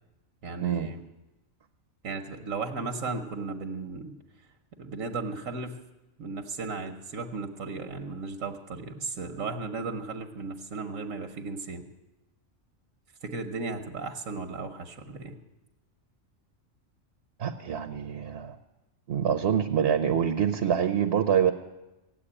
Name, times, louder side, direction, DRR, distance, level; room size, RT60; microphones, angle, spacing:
voice 1, 0.4-1.0 2.0-4.1 4.8-5.8 6.2-11.8 13.2-15.4, right 4 dB, 85° right, 5 dB, 1.4 m, -35 dB
voice 2, 17.4-18.6 19.1-21.5, right 8 dB, 55° right, 7 dB, 1.0 m, -26 dB
16.5 x 8.3 x 9.9 m, 1.0 s
omnidirectional pair, 1.3 m